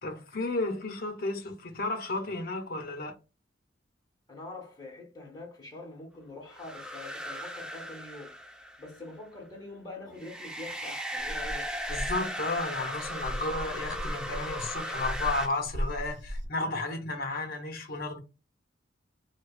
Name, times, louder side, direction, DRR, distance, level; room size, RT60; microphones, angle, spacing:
voice 1, 0.0-3.2 11.9-18.2, left 2 dB, 50° left, 0.8 m, -33 dB
voice 2, 4.3-8.4 8.8-11.7, left 2 dB, 20° left, 1.0 m, -44 dB
sound 1, 6.5-9.0 10.2-15.5, equal, 5° right, 0.5 m, -37 dB
sound 2, 11.2-16.5, equal, 70° right, 0.6 m, -37 dB
4.7 x 2.3 x 2.4 m
head